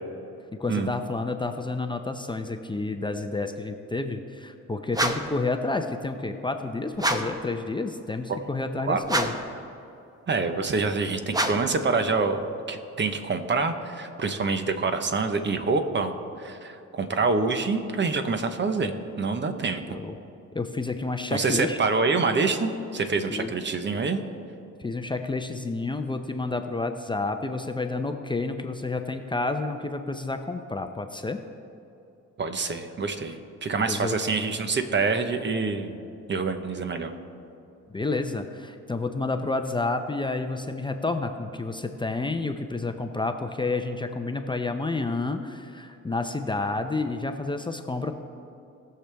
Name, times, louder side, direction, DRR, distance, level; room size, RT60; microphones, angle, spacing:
voice 1, 0.5-9.3 19.6-20.1 20.5-21.8 23.3-23.5 24.8-31.4 33.9-34.2 37.9-48.1, left 3 dB, 15° left, 6 dB, 0.6 m, -30 dB
sound 1, 4.9-5.4 7.0-7.4 9.0-9.5 11.3-11.8, right 1 dB, 10° right, 0.9 m, -27 dB
voice 2, 10.3-18.9 19.2-19.8 21.3-24.2 32.4-36.0 36.3-37.1, right 4 dB, 40° right, 7 dB, 1.0 m, -26 dB
19.5 x 6.8 x 3.4 m, 2.7 s
cardioid pair, 90°, 30 cm